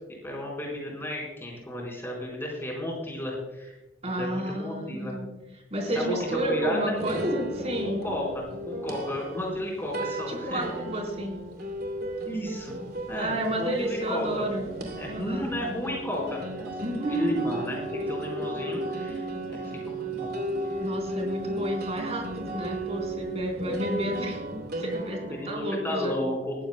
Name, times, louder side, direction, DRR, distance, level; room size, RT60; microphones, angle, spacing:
voice 1, 0.2-3.7 4.2-5.1 5.9-7.0 7.8-10.7 12.2-12.8 13.1-14.5 14.9-16.8 17.1-20.3 20.6-20.8 25.3-26.5, left 1 dB, 10° left, -2 dB, 4.4 m, -33 dB
voice 2, 4.0-5.3 5.7-8.0 10.3-11.4 13.2-14.7 15.1-15.6 16.8-17.4 20.8-24.4 24.8-25.2 25.4-26.1, right 1 dB, 35° right, 1 dB, 4.1 m, -31 dB
sound 1, 6.1-25.5, right 1 dB, 55° right, 2.8 m, -35 dB
20.5 x 14.5 x 2.2 m, 1.0 s
head